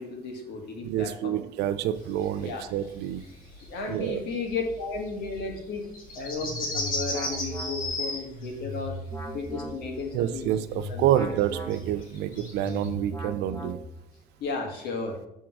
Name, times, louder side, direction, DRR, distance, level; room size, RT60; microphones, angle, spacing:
voice 1, 0.0-1.4 2.4-2.6 3.7-5.8 6.1-9.0 9.3-10.4 10.9-11.2 14.4-15.2, left 4 dB, 75° left, 2 dB, 1.8 m, -34 dB
voice 2, 0.8-3.2 3.9-4.2 10.1-13.8, right 11 dB, 80° right, 11 dB, 0.6 m, -28 dB
sound 1, 2.0-8.5 8.8-9.3 9.6-10.9 11.2-12.9, left 2 dB, 55° left, 2.3 m, -36 dB
sound 2, 6.2-14.2, equal, 15° left, 1.3 m, -38 dB
7.0 x 3.7 x 6.0 m, 0.82 s
cardioid pair, 110°, 17 cm